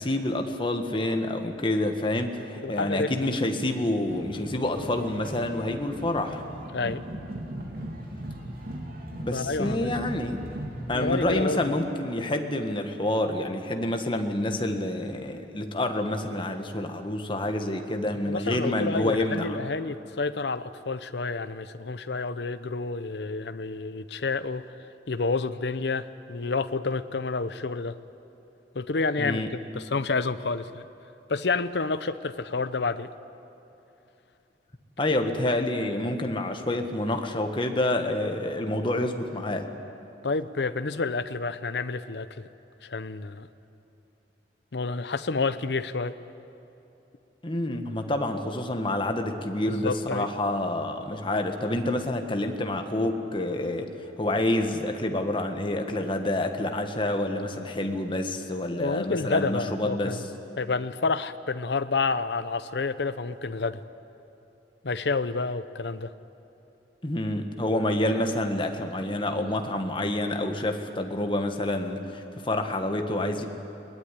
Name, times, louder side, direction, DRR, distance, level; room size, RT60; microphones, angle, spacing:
voice 1, 0.0-6.4 9.2-10.4 10.9-19.6 29.2-29.5 35.0-39.7 47.4-60.2 67.0-73.4, left 1 dB, 30° left, 5 dB, 1.6 m, -28 dB
voice 2, 2.6-3.3 6.7-7.0 9.3-9.9 10.9-11.6 18.3-24.6 25.1-27.9 28.7-29.4 29.7-30.9 31.3-33.1 40.2-42.5 42.8-43.5 44.7-46.1 49.7-50.3 58.8-60.2 60.6-63.8 64.8-66.1, left 4 dB, 70° left, 12 dB, 0.7 m, -29 dB
sound 1, 4.0-11.4, right 1 dB, 55° right, 3.1 m, -38 dB
22.0 x 19.5 x 9.9 m, 2.8 s
head